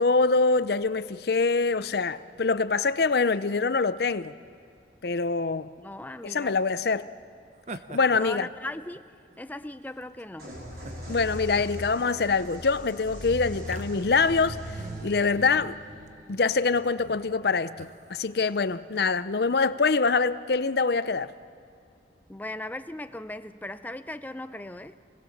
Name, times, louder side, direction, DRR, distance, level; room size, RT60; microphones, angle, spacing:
voice 1, 0.0-4.3 5.0-5.7 6.2-7.1 7.9-8.5 11.1-15.8 16.3-21.3, left 4 dB, 60° left, 0.6 m, -25 dB
voice 2, 5.8-6.6 7.9-9.1 9.4-10.5 22.3-25.0, left 1 dB, 10° left, 0.5 m, -38 dB
sound 1, 7.6-9.4 10.0-10.2 10.7-14.3 14.7-15.8 16.1-16.3 16.9-17.3 17.8-18.5, right 2 dB, 40° right, 0.8 m, -45 dB
sound 2, 10.4-18.0, equal, 55° right, 4.9 m, -40 dB
28.0 x 21.0 x 7.2 m
head